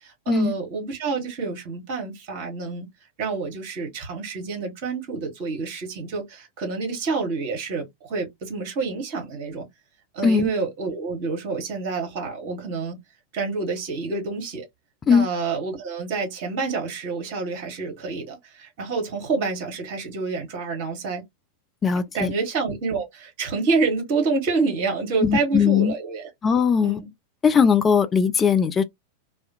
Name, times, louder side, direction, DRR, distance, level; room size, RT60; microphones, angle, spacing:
voice 1, 0.0-2.9 3.2-9.7 10.1-13.0 13.3-14.6 15.1-21.2 22.1-26.3 26.8-27.1, right 4 dB, 45° right, 1.1 m, -28 dB
voice 2, 21.8-22.3 25.2-25.9 26.4-27.0 27.4-28.8, left 6 dB, 20° left, 0.3 m, -19 dB
2.3 x 2.1 x 2.7 m
figure-of-eight pair, 90°, 0 cm